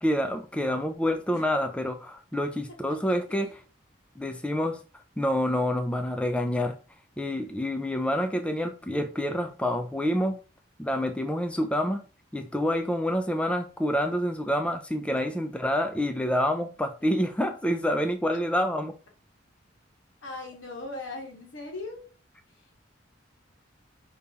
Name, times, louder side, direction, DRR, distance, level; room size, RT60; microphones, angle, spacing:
voice 1, 0.0-3.6 4.2-4.8 5.2-6.8 7.2-10.4 10.8-12.0 12.3-18.9, equal, 5° left, 0.4 m, -27 dB
voice 2, 20.2-22.1, left 2 dB, 85° left, 1.5 m, -38 dB
5.3 x 2.9 x 3.5 m
head